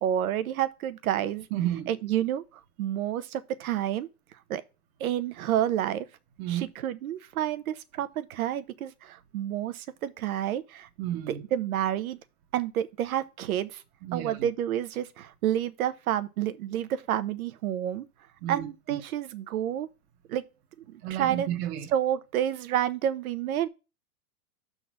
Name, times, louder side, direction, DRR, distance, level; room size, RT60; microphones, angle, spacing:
voice 1, 0.0-1.5 1.9-2.4 2.8-4.1 4.5-4.6 5.0-6.1 6.5-10.9 11.3-12.2 12.5-13.8 14.1-18.1 18.5-19.9 20.3-20.4 20.9-21.5 21.9-23.7, right 11 dB, 70° right, 0.9 m, -29 dB
voice 2, 1.5-1.9 6.4-6.7 11.0-11.4 14.0-14.5 18.4-19.0 21.0-21.9, right 12 dB, 45° right, 1.1 m, -32 dB
6.2 x 3.9 x 6.0 m
hypercardioid pair, 135°, 44 cm